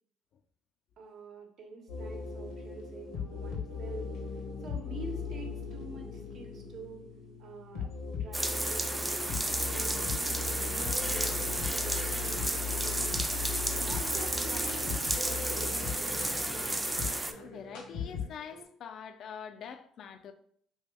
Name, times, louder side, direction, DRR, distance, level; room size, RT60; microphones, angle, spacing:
voice 1, 1.0-4.1 4.6-7.1 7.4-9.3 9.7-11.3 11.7-13.2 13.7-16.3, right 3 dB, 60° right, 0.9 m, -47 dB
sound 1, 1.9-18.6, left 5 dB, 85° left, 0.9 m, -38 dB
sound 2, 8.3-17.3, right 1 dB, 15° right, 0.4 m, -32 dB
voice 2, 17.4-20.3, left 7 dB, 60° left, 0.3 m, -44 dB
2.9 x 2.7 x 3.4 m
supercardioid pair, 70°, 0 cm